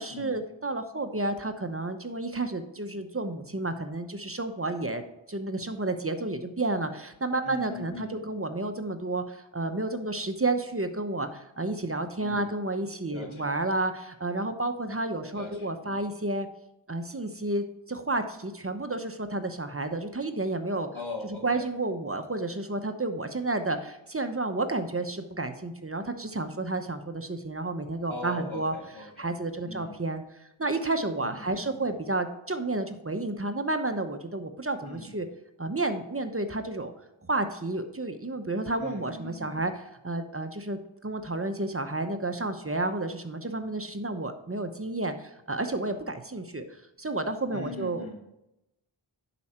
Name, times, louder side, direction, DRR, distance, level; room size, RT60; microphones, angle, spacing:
voice 1, 0.0-16.5 16.9-20.9 21.4-28.7 29.2-30.2 30.6-35.3 35.6-36.9 37.3-39.7 40.0-48.1, right 2 dB, 30° right, 7 dB, 1.0 m, -31 dB
voice 2, 7.4-8.2 12.2-12.5 13.1-13.5 15.3-16.0 20.9-21.7 28.1-29.3 29.6-30.0 31.2-31.9 34.8-35.2 38.8-39.6 47.5-48.1, left 2 dB, 75° left, 1 dB, 2.2 m, -41 dB
11.0 x 4.9 x 4.3 m, 0.87 s
wide cardioid pair, 50°, 48 cm